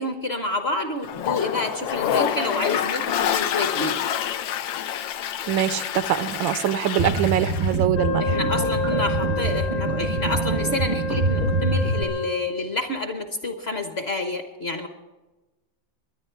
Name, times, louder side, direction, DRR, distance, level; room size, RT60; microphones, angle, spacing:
voice 1, 0.0-4.2 8.2-14.9, left 2 dB, 40° left, 7 dB, 1.1 m, -28 dB
Toilet flush, 1.0-7.8, left 9 dB, 80° left, 1.4 m, -27 dB
voice 2, 5.5-8.4, right 11 dB, 80° right, 14 dB, 1.4 m, -24 dB
sound 1, 7.0-12.0, right 2 dB, 35° right, 0.6 m, -25 dB
Wind instrument woodwind instrument, 7.9-12.7, left 4 dB, 60° left, 2.1 m, -29 dB
22.5 x 10.5 x 4.6 m, 1.1 s
omnidirectional pair, 2.1 m